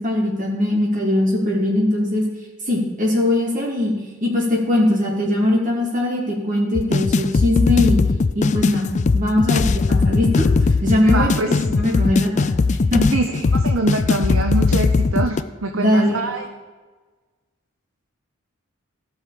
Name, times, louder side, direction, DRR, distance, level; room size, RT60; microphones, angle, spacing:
voice 1, 0.0-2.2 2.7-3.9 4.2-8.0 8.3-8.9 9.1-13.0 15.7-16.3, left 1 dB, 40° right, -3 dB, 2.8 m, -20 dB
sound 1, 6.7-15.4, left 4 dB, 35° left, 0.4 m, -19 dB
voice 2, 11.0-11.6 13.1-16.5, right 2 dB, 75° right, 4 dB, 0.8 m, -24 dB
16.0 x 6.4 x 5.1 m, 1.3 s
head